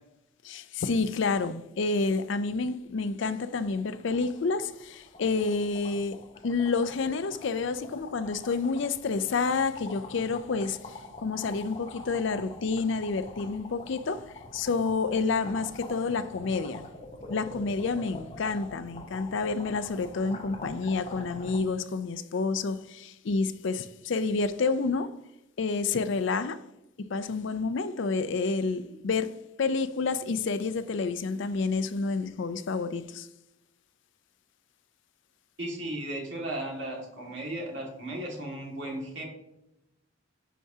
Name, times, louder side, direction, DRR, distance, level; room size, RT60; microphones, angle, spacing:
voice 1, 0.4-6.2 6.4-16.8 17.3-25.1 25.6-26.6 27.1-29.3 29.6-33.3, left 4 dB, 60° left, 0.4 m, -29 dB
sound 1, 2.5-2.7 3.0-3.1 3.4-21.6, left 2 dB, 30° left, 0.9 m, -45 dB
voice 2, 35.6-39.2, right 1 dB, 55° right, 2.0 m, -35 dB
10.0 x 4.7 x 2.8 m
head